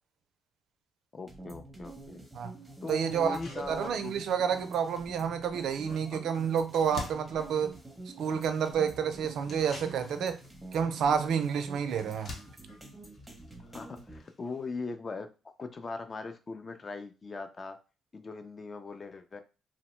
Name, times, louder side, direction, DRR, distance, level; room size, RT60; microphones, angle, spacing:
voice 1, 1.1-2.2 2.8-4.2 5.8-6.2 13.6-15.3 15.6-17.8 18.1-19.4, left 3 dB, 35° left, 0.4 m, -40 dB
sound 1, 1.3-14.2, right 2 dB, 10° right, 0.7 m, -48 dB
sound 2, 2.1-2.2 2.7-2.8 3.1-14.8, left 2 dB, 55° left, 0.9 m, -50 dB
voice 2, 2.9-3.4 3.7-7.8 8.2-10.4 10.7-12.3, right 7 dB, 75° right, 0.4 m, -29 dB
2.8 x 2.1 x 3.0 m
cardioid pair, 90°, 0 cm